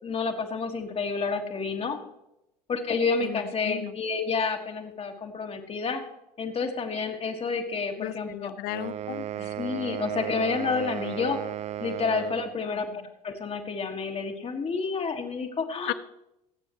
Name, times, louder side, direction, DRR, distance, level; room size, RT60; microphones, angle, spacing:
voice 1, 0.0-2.0 2.7-6.0 6.4-8.5 9.4-11.4 11.8-12.9 13.2-15.9, left 4 dB, 30° left, 4 dB, 1.9 m, -29 dB
voice 2, 3.2-4.0 8.0-9.5 12.7-13.1 15.9-16.0, left 16 dB, 50° left, 16 dB, 0.7 m, -36 dB
sound 1, 8.7-12.5, right 12 dB, 30° right, 0.6 m, -35 dB
24.0 x 8.9 x 3.1 m, 0.87 s
figure-of-eight pair, 70°, 21 cm